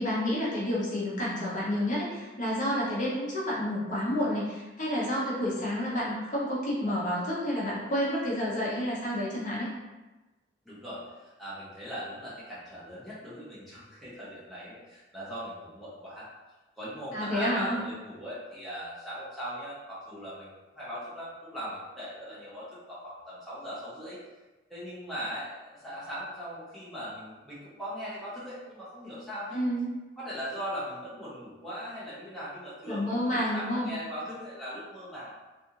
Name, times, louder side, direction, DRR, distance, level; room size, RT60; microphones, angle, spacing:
voice 1, 0.0-9.7 17.1-17.8 29.5-29.9 32.9-33.9, equal, 40° left, -7 dB, 0.7 m, -29 dB
voice 2, 10.7-16.3 16.8-24.2 24.7-29.6 30.2-35.4, equal, ahead, -11 dB, 0.7 m, -40 dB
2.5 x 2.4 x 2.8 m, 1.1 s
head